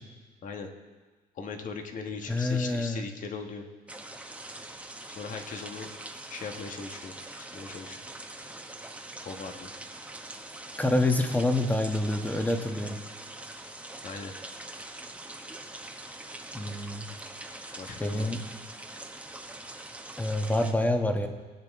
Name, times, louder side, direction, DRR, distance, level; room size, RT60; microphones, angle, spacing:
voice 1, 1.3-3.7 5.2-5.9 6.3-7.1 7.5-8.0 9.2-9.7 14.0-14.3 17.8-18.3, left 4 dB, 50° left, 5 dB, 1.5 m, -39 dB
voice 2, 2.3-3.0 10.8-13.0 16.5-17.0 18.0-18.4 20.2-21.3, left 1 dB, 10° left, 5 dB, 1.4 m, -27 dB
sound 1, 3.9-20.7, right 2 dB, 10° right, 1.0 m, -43 dB
20.5 x 9.1 x 3.7 m, 1.4 s
cardioid pair, 110°, 17 cm